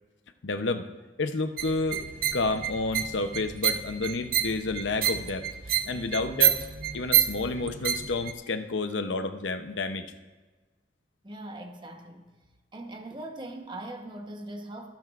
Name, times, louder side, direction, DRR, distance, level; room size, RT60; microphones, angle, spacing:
voice 1, 0.4-0.9 1.2-2.1 2.3-5.5 5.9-6.6 6.9-10.1, left 3 dB, 85° left, 0.7 m, -30 dB
sound 1, 1.6-8.3, right 10 dB, 50° right, 0.6 m, -28 dB
voice 2, 11.2-12.3 12.7-15.0, right 1 dB, 25° right, 1.0 m, -40 dB
24.5 x 9.1 x 2.5 m
head